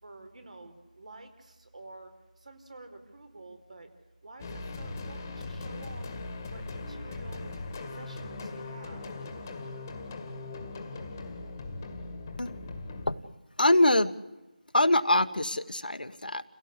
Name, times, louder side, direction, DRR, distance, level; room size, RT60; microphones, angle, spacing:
voice 1, 0.0-3.9 4.2-6.1 6.5-7.5 7.8-9.1, right 2 dB, 55° right, 7 dB, 4.6 m, -49 dB
sound 1, 4.4-13.1, left 2 dB, 20° left, 1.9 m, -39 dB
voice 2, 13.6-14.1 14.7-16.4, left 1 dB, 90° left, 9 dB, 1.6 m, -24 dB
29.5 x 17.0 x 8.2 m, 1.1 s
figure-of-eight pair, 170°, 5 cm